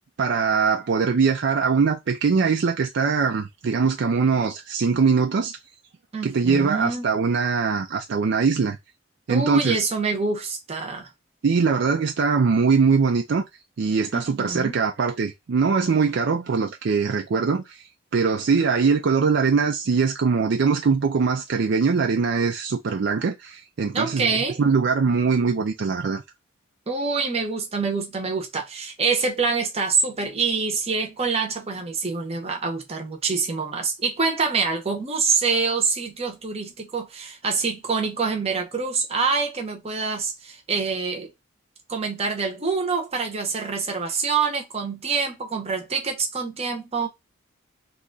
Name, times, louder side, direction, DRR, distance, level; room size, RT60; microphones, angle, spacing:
voice 1, 0.2-5.5 6.2-8.8 9.3-9.8 11.4-13.4 13.8-17.8 18.1-26.2, right 5 dB, 55° right, 0.4 m, -22 dB
voice 2, 6.1-7.1 9.3-11.1 14.1-14.8 23.9-24.6 26.9-41.3 41.9-47.1, right 4 dB, 30° right, 0.8 m, -26 dB
2.9 x 2.3 x 3.8 m
head